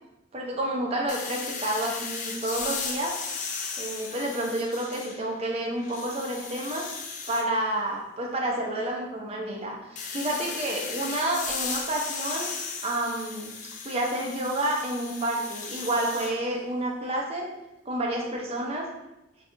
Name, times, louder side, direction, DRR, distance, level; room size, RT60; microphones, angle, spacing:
voice 1, 0.3-3.1 3.8-6.8 7.3-12.5 12.8-13.5 13.8-17.5 17.9-18.9, right 1 dB, 30° right, -1 dB, 0.5 m, -29 dB
sound 1, 1.1-5.4 5.8-7.4 10.0-16.3, left 5 dB, 40° left, 0.3 m, -36 dB
2.6 x 2.3 x 3.6 m, 0.94 s
head